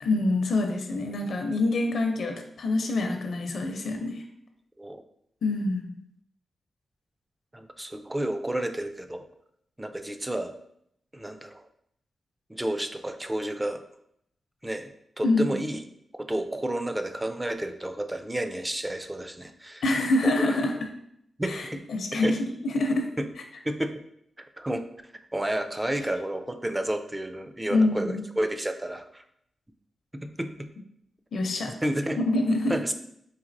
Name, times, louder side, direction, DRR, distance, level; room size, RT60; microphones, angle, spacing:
voice 1, 0.0-4.2 5.4-5.9 15.2-15.6 19.8-20.7 21.4-22.4 22.6-23.1 27.7-28.2 31.3-31.7 32.3-32.8, left 2 dB, 75° left, 4 dB, 0.5 m, -26 dB
voice 2, 7.5-9.2 9.8-10.5 11.1-11.6 12.5-13.8 14.6-14.9 15.2-15.8 16.2-19.8 20.2-20.6 21.4-21.8 22.1-22.4 23.2-23.3 23.6-23.9 24.6-24.8 25.3-29.2 30.1-30.7 31.7-32.2 32.7-32.9, right 1 dB, 15° right, 7 dB, 0.3 m, -31 dB
4.0 x 2.8 x 2.6 m, 0.73 s
cardioid pair, 85°, 0 cm